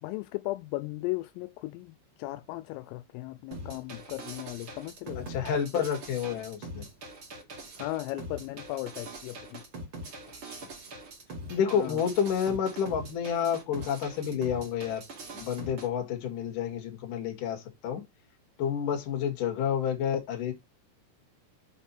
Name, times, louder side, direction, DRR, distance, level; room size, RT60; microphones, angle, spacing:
voice 1, 0.0-5.3 7.8-9.6 11.7-12.0, left 18 dB, 85° left, 3.1 m, -36 dB
sound 1, 3.5-15.9, right 2 dB, 70° right, 1.2 m, -43 dB
voice 2, 5.3-6.9 10.5-10.6 11.5-15.0 15.3-18.0 18.6-20.5, left 8 dB, 55° left, 2.7 m, -29 dB
7.1 x 5.0 x 4.3 m
omnidirectional pair, 6.0 m